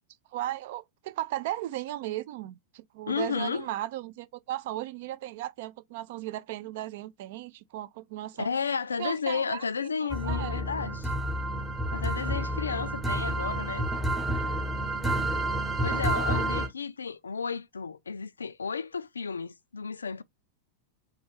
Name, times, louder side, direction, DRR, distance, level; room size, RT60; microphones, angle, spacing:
voice 1, 0.3-8.5 9.0-9.9 10.3-10.6 15.0-15.3 16.3-16.5, right 14 dB, 50° right, 0.4 m, -36 dB
voice 2, 3.1-3.7 8.4-11.1 11.9-13.9 15.8-20.2, left 5 dB, 75° left, 0.3 m, -32 dB
sound 1, 10.1-16.7, right 1 dB, 15° right, 0.9 m, -29 dB
4.2 x 2.3 x 3.3 m
figure-of-eight pair, 90°, 0 cm